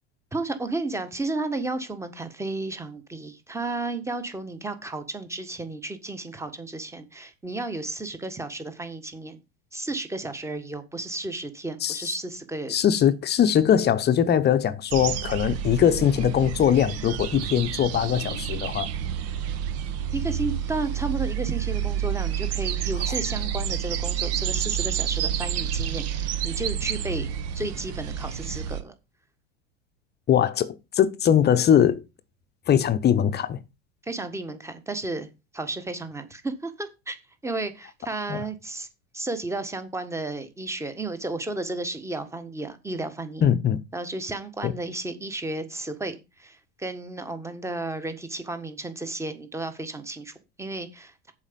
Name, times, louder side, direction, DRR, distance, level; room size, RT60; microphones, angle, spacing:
voice 1, 0.3-9.4 9.7-12.8 20.1-28.9 34.0-35.3 35.5-37.2 37.4-38.9 39.1-43.4 43.9-51.3, right 2 dB, 10° right, 1.5 m, -33 dB
voice 2, 11.8-12.1 12.7-18.9 30.3-32.0 32.7-33.6 38.3-38.4 43.4-43.8 44.6-44.7, left 9 dB, 30° left, 0.9 m, -21 dB
sound 1, 14.9-28.8, right 9 dB, 50° right, 1.2 m, -29 dB
7.3 x 4.8 x 6.9 m
hypercardioid pair, 90°, 33 cm